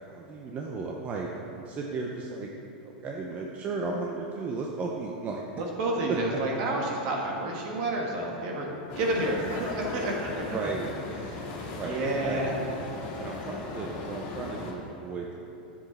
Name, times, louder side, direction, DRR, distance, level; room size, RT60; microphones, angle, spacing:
voice 1, 0.1-2.5 2.8-5.4 10.4-10.9 11.7-12.4 13.2-15.3, right 3 dB, 30° right, -1 dB, 0.8 m, -35 dB
voice 2, 5.6-8.7 9.0-10.7 11.2-12.6, right 1 dB, 55° right, -1 dB, 2.0 m, -30 dB
sound 1, 8.9-14.7, left 3 dB, 50° left, 1.9 m, -37 dB
9.9 x 7.4 x 4.2 m, 3.0 s
supercardioid pair, 130°, 5 cm